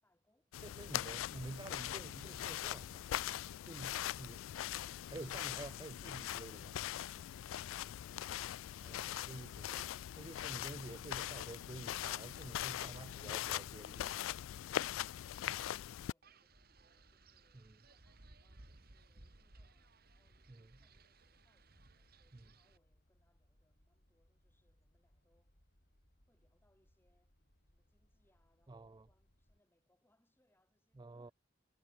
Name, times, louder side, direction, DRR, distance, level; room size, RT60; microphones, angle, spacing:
voice 1, 0.0-2.1 14.3-25.7 26.3-27.4 27.7-31.3, left 1 dB, 10° left, 4.7 m, -79 dB
sound 1, 0.5-16.1, left 12 dB, 90° left, 0.3 m, -41 dB
voice 2, 0.6-3.1 3.6-4.5 5.1-6.8 8.8-9.8 10.2-14.1 15.5-15.6 17.5-17.7 20.5-20.7 28.7-29.1 31.0-31.3, right 2 dB, 20° right, 0.4 m, -50 dB
Wind, 16.2-22.8, right 2 dB, 50° right, 1.9 m, -62 dB
sound 2, 16.4-29.6, equal, 50° left, 5.0 m, -72 dB
head